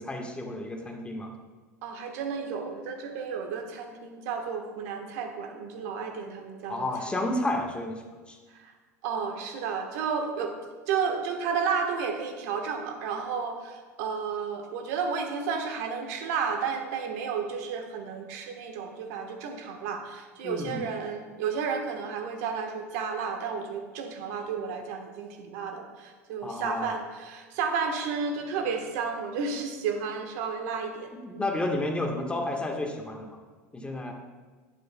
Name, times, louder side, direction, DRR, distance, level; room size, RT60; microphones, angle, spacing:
voice 1, 0.0-1.3 6.7-8.4 20.4-20.8 26.4-26.9 31.2-33.4 33.7-34.1, left 1 dB, 10° left, 2 dB, 1.4 m, -31 dB
voice 2, 1.8-7.1 8.5-8.7 9.0-10.6 10.9-31.5, right 6 dB, 70° right, 4 dB, 1.3 m, -32 dB
11.5 x 9.0 x 2.3 m, 1.4 s
hypercardioid pair, 85°, 9 cm